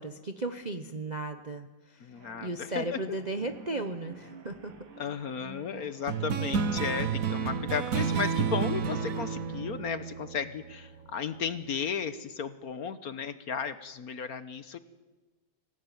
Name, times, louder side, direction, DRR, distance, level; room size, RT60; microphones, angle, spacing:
voice 1, 0.0-2.1 2.4-4.7, right 2 dB, 35° right, 7 dB, 0.7 m, -35 dB
voice 2, 2.0-3.0 5.0-14.8, left 6 dB, 55° left, 12 dB, 1.3 m, -34 dB
sound 1, 2.1-9.6, right 4 dB, 90° right, 2.6 m, -51 dB
sound 2, 6.1-11.0, right 6 dB, 50° right, 1.3 m, -31 dB
25.5 x 17.0 x 9.3 m, 1.2 s
omnidirectional pair, 2.1 m